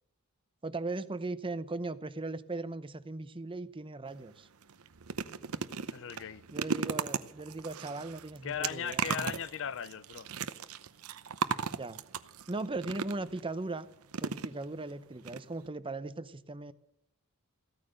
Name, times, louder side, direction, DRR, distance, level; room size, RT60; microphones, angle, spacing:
voice 1, 0.6-4.5 6.5-9.3 11.7-12.0 12.5-13.9 14.2-16.7, right 2 dB, 25° right, 0.7 m, -38 dB
sound 1, 4.1-4.2 4.6-13.4 14.1-14.9 15.2-15.4 15.6-15.7, right 6 dB, 80° right, 0.8 m, -37 dB
voice 2, 5.9-6.4 8.4-10.3, left 8 dB, 60° left, 0.6 m, -38 dB
15.0 x 13.5 x 6.5 m
head